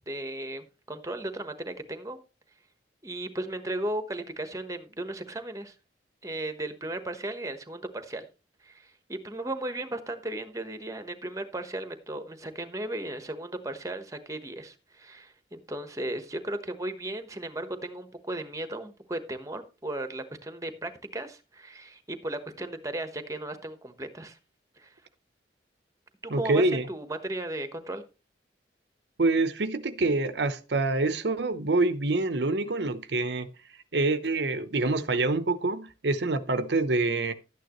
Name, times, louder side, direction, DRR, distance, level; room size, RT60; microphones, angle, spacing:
voice 1, 0.1-2.2 3.0-5.7 6.2-8.3 8.6-24.4 24.8-24.9 26.2-28.0, right 1 dB, 20° right, 1.1 m, -36 dB
voice 2, 26.3-26.9 29.2-33.5 33.9-37.3, right 2 dB, 80° right, 0.9 m, -26 dB
12.0 x 9.3 x 3.0 m
head